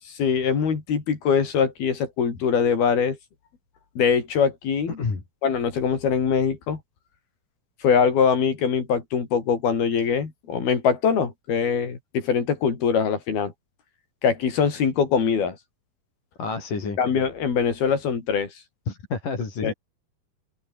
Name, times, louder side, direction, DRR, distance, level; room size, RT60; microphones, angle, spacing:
voice 1, 0.1-3.2 4.0-5.0 5.4-6.8 7.8-13.5 14.2-15.6 17.0-18.5 19.6-19.7, left 6 dB, 75° left, 6.1 m, -23 dB
voice 2, 16.4-17.0 18.9-19.7, left 4 dB, 55° left, 6.9 m, -29 dB
omnidirectional pair, 4.4 m